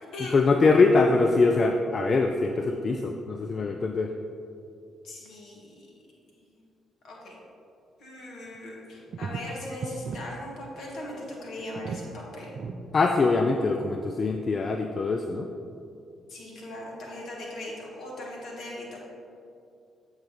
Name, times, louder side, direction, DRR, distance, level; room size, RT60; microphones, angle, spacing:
voice 1, 0.2-4.1 12.9-15.5, left 3 dB, 45° left, 5 dB, 0.4 m, -23 dB
voice 2, 5.0-5.9 6.3-6.5 7.0-7.4 8.0-12.6 16.3-19.2, left 1 dB, 65° left, -3 dB, 1.4 m, -39 dB
sound 1, 8.5-8.6 9.1-10.2 10.5-10.7 11.0-11.1 11.6-12.1 12.5-12.8 13.4-13.5, right 5 dB, 60° right, 0.4 m, -36 dB
7.4 x 4.8 x 3.5 m, 2.6 s
hypercardioid pair, 45°, 0 cm